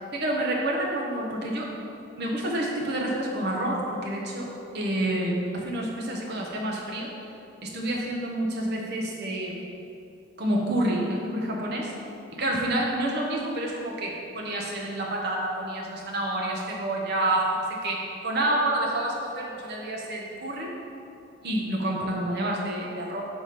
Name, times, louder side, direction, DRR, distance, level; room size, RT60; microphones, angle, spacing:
voice 1, 0.1-1.7 2.2-4.5 4.7-7.1 7.6-9.7 10.4-11.9 12.4-20.7 21.4-23.3, right 1 dB, 50° right, -2 dB, 0.9 m, -28 dB
5.8 x 3.6 x 4.9 m, 2.6 s
head